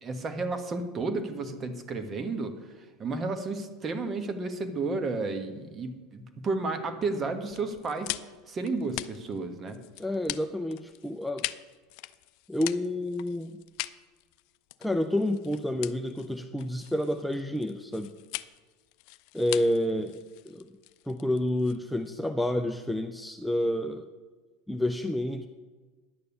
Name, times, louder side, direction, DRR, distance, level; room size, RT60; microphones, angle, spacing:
voice 1, 0.0-2.6 3.0-8.1 8.5-9.8, right 3 dB, 30° right, 8 dB, 1.4 m, -32 dB
sound 1, 7.5-22.2, left 19 dB, 65° left, 0.4 m, -41 dB
voice 2, 10.0-11.5 12.5-13.6 14.8-18.1 19.3-20.2 20.5-20.7 21.1-24.1 24.7-25.5, left 1 dB, ahead, 6 dB, 0.6 m, -29 dB
10.5 x 6.8 x 7.0 m, 1.4 s
hypercardioid pair, 100°, 0 cm